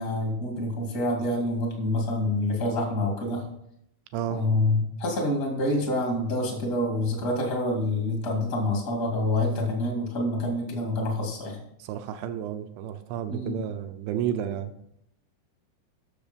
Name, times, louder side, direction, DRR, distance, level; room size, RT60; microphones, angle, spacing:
voice 1, 0.0-3.4 4.3-11.6 13.3-13.6, left 1 dB, 45° left, 1 dB, 1.1 m, -27 dB
voice 2, 4.1-4.5 11.8-14.7, right 9 dB, 80° right, 9 dB, 2.8 m, -31 dB
12.5 x 6.6 x 5.2 m, 0.74 s
omnidirectional pair, 5.7 m